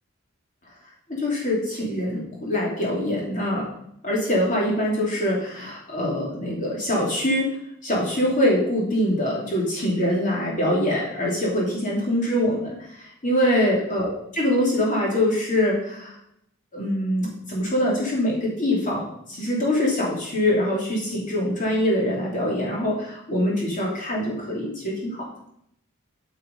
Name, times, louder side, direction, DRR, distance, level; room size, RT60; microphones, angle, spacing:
voice 1, 1.1-3.7 4.0-7.5 7.8-16.1 16.7-25.2, left 1 dB, 35° left, -3 dB, 2.8 m, -24 dB
9.5 x 5.6 x 5.2 m, 0.72 s
head